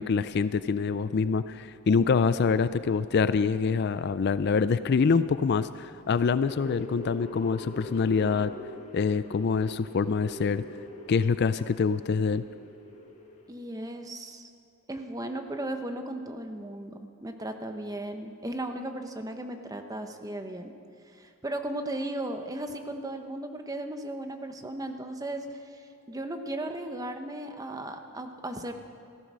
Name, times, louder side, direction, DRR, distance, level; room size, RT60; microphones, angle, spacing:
voice 1, 0.0-8.5 8.9-10.6 11.1-12.4, left 5 dB, 50° left, 14 dB, 0.4 m, -25 dB
sound 1, 6.2-13.5, left 1 dB, 30° left, 1.4 m, -43 dB
voice 2, 13.5-14.5 14.9-20.7 21.0-28.7, right 1 dB, 15° right, 6 dB, 0.9 m, -36 dB
15.5 x 13.5 x 6.3 m, 2.4 s
head